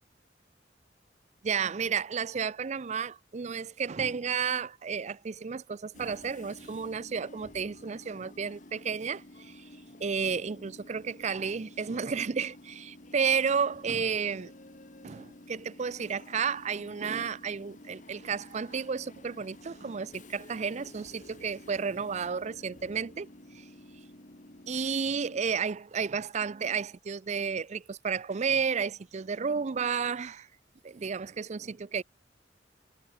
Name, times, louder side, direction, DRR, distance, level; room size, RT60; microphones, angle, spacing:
voice 1, 1.4-9.7 10.0-14.5 15.0-23.3 23.5-23.7 24.7-30.5 30.8-32.0, right 6 dB, 40° right, 0.5 m, -32 dB
Train / Subway metro underground, 5.9-25.4, left 1 dB, 45° left, 2.4 m, -51 dB
head